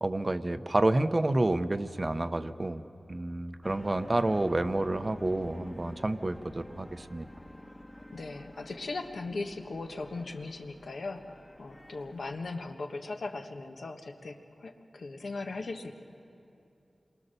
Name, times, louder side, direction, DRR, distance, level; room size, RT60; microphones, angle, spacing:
voice 1, 0.0-2.8 3.1-7.3, right 2 dB, 30° right, 10 dB, 0.7 m, -29 dB
sound 1, 3.6-12.7, left 1 dB, 15° left, 1.1 m, -49 dB
voice 2, 8.1-15.9, left 3 dB, 80° left, 4 dB, 1.4 m, -38 dB
28.0 x 23.0 x 6.8 m, 2.6 s
wide cardioid pair, 105°, 0 cm